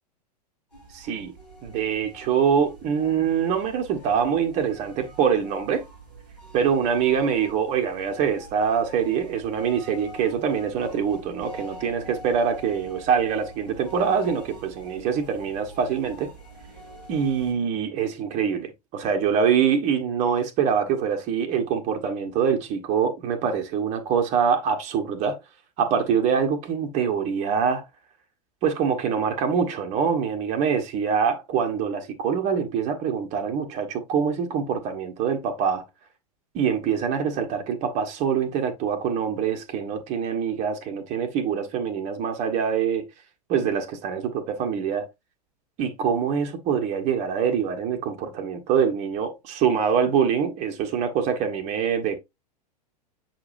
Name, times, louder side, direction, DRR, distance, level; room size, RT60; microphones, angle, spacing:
sound 1, 0.7-17.5, right 2 dB, 85° left, 3.4 m, -45 dB
voice 1, 0.9-1.3 1.6-5.8 6.5-16.3 17.1-25.4 25.8-27.8 28.6-35.9 36.5-43.1 43.5-45.1 45.8-52.2, right 7 dB, 35° right, 1.2 m, -24 dB
7.6 x 4.9 x 2.5 m
figure-of-eight pair, 90°, 21 cm